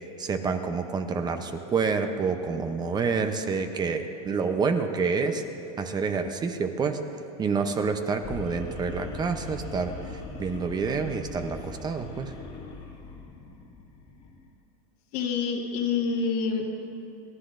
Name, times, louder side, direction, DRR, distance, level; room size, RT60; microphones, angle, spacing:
voice 1, 0.2-5.4 5.8-7.0 7.4-12.3, right 5 dB, 20° right, 7 dB, 0.6 m, -28 dB
sound 1, 8.2-14.5, left 3 dB, 35° left, 1.7 m, -41 dB
voice 2, 15.1-16.8, left 5 dB, 70° left, -3 dB, 1.9 m, -27 dB
28.0 x 11.5 x 2.5 m, 2.8 s
supercardioid pair, 135°, 20 cm